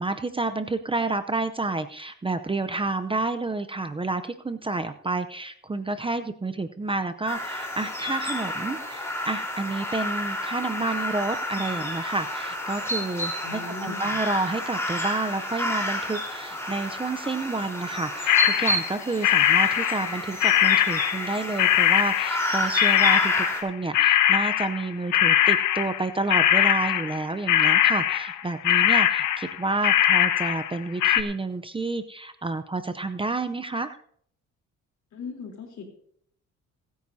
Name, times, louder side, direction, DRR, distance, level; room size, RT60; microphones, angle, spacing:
voice 1, 0.0-34.0, right 3 dB, 15° right, 9 dB, 0.7 m, -29 dB
sound 1, 7.3-23.6, left 1 dB, 10° left, 4.1 m, -30 dB
voice 2, 13.4-14.2 35.1-35.9, left 4 dB, 65° left, 1 dB, 3.7 m, -38 dB
sound 2, 18.3-19.0 19.2-21.3 21.6-30.8 31.0-31.2, left 11 dB, 90° left, 1.0 m, -21 dB
24.5 x 9.5 x 2.8 m, 0.65 s
cardioid pair, 90°, 30 cm